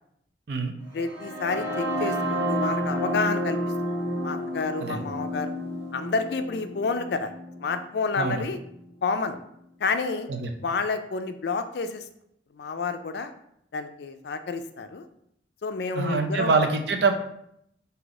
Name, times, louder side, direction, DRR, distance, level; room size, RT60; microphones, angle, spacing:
voice 1, 0.9-3.7 4.2-5.5 5.9-7.3 7.6-8.6 9.0-9.4 9.8-10.3 10.6-12.1 12.5-13.3 13.7-15.1 15.6-16.5, left 4 dB, 60° left, 9 dB, 0.4 m, -29 dB
sound 1, 0.9-8.8, equal, 90° right, 1.3 m, -31 dB
voice 2, 15.9-17.2, right 4 dB, 65° right, 5 dB, 0.6 m, -25 dB
4.0 x 2.7 x 4.8 m, 0.74 s
head